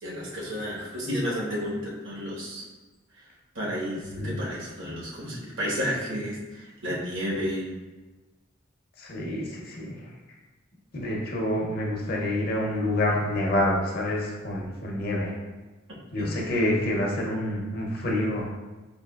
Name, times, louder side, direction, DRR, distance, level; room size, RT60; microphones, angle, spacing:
voice 1, 0.0-2.6 3.1-3.2 3.5-7.7 16.1-16.3, equal, 70° right, -5 dB, 1.2 m, -31 dB
voice 2, 9.0-10.0 10.9-15.3 16.1-18.5, left 1 dB, 50° left, -2 dB, 0.6 m, -27 dB
4.7 x 2.8 x 2.3 m, 1.2 s
head